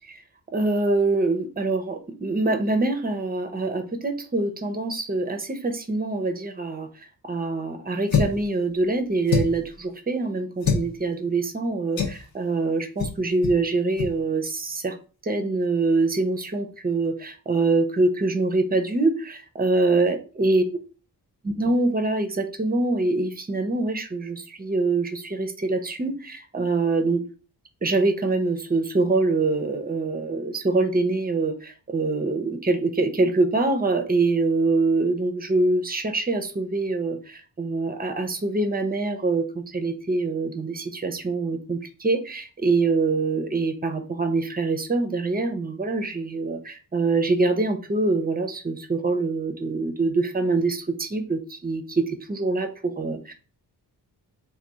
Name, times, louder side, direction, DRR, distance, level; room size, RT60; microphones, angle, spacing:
voice 1, 0.5-6.9 7.2-15.0 15.2-20.6 21.4-27.2 27.8-53.3, right 3 dB, 20° right, 0.7 m, -24 dB
sound 1, 8.1-8.5 9.3-9.7 10.6-10.9 12.0-12.2 13.0-13.2 13.4-13.6 13.9-14.1, left 5 dB, 55° left, 0.8 m, -24 dB
3.4 x 2.4 x 3.8 m
cardioid pair, 60°, 42 cm